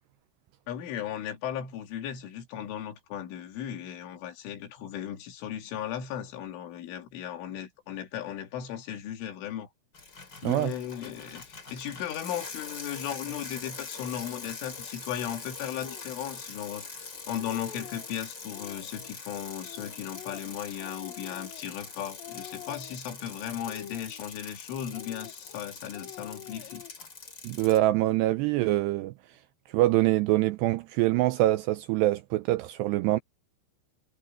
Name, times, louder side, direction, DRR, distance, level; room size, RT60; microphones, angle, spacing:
voice 1, 0.7-9.7 10.4-26.8, left 10 dB, 85° left, 4.7 m, -36 dB
Bicycle, 9.9-27.8, left 4 dB, 25° left, 3.1 m, -43 dB
voice 2, 10.4-10.7 27.4-29.1 29.7-33.2, right 16 dB, 85° right, 2.4 m, -24 dB
Speech, 15.8-16.1 16.8-16.9 17.2-18.1 18.5-19.1 19.6-21.9 22.2-23.1 23.6-24.6 24.9-25.6 25.9-27.1, left 12 dB, 70° left, 2.3 m, -47 dB
omnidirectional pair, 5.5 m